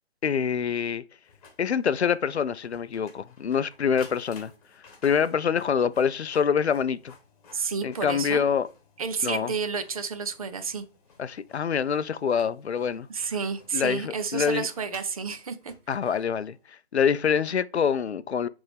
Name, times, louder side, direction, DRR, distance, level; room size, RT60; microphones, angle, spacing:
voice 1, 0.2-1.0 1.6-4.5 5.0-7.1 7.8-8.7 9.2-9.5 11.2-13.1 13.7-14.7 15.9-16.6 16.9-18.5, left 7 dB, 85° left, 0.5 m, -25 dB
Printer, 1.3-16.6, left 4 dB, 35° left, 1.3 m, -55 dB
voice 2, 7.5-8.4 9.0-10.8 13.1-15.7, right 5 dB, 35° right, 0.6 m, -30 dB
7.9 x 3.5 x 3.4 m
figure-of-eight pair, 145°, 32 cm